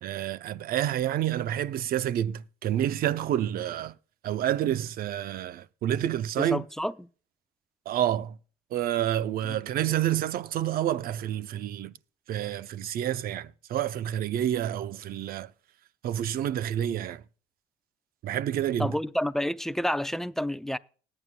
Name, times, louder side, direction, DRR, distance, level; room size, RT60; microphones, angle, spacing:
voice 1, 0.0-3.9 4.2-6.6 7.9-8.4 8.7-11.9 12.3-15.5 16.0-17.2 18.2-19.0, right 11 dB, 60° right, 0.6 m, -29 dB
voice 2, 6.4-6.9 9.5-9.6 18.8-20.8, left 1 dB, ahead, 0.4 m, -29 dB
20.0 x 8.9 x 2.2 m
cardioid pair, 110°, 17 cm